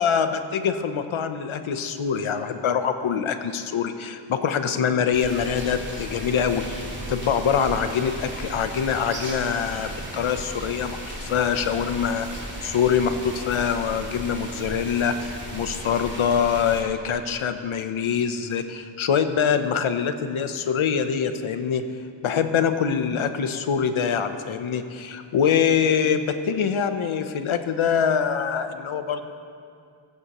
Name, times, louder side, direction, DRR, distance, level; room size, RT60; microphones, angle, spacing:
voice 1, 0.0-21.8 22.2-29.3, left 7 dB, 75° left, 9 dB, 0.9 m, -24 dB
sound 1, 5.1-16.8, right 1 dB, 20° right, 3.0 m, -36 dB
15.0 x 14.5 x 3.0 m, 2.3 s
cardioid pair, 60°, 48 cm